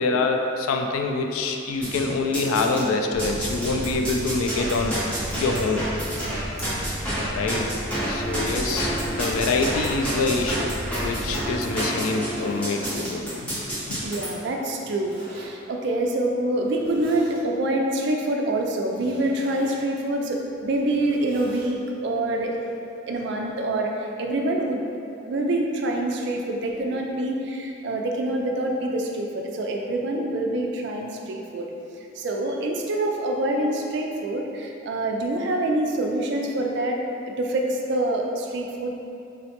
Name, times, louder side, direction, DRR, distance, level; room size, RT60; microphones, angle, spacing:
voice 1, 0.0-5.0 5.3-5.9 7.3-7.7 8.1-10.7 11.0-13.6 13.9-14.0, left 3 dB, 90° left, 4 dB, 0.3 m, -25 dB
sound 1, 1.8-2.8 3.2-14.3, equal, 5° left, 0.6 m, -29 dB
sound 2, 3.1-11.7, right 1 dB, 35° left, 1.0 m, -34 dB
Zipper (clothing), 9.9-10.6 11.3-11.4 12.0-12.9 14.7-15.5 16.5-17.4 18.9-19.8 20.6-21.7, right 1 dB, 25° right, 0.7 m, -45 dB
voice 2, 14.0-22.5 23.1-24.8 25.3-31.7 32.2-37.0 37.2-38.9, right 1 dB, 55° right, 1 dB, 0.3 m, -26 dB
3.8 x 2.1 x 2.8 m, 2.7 s
head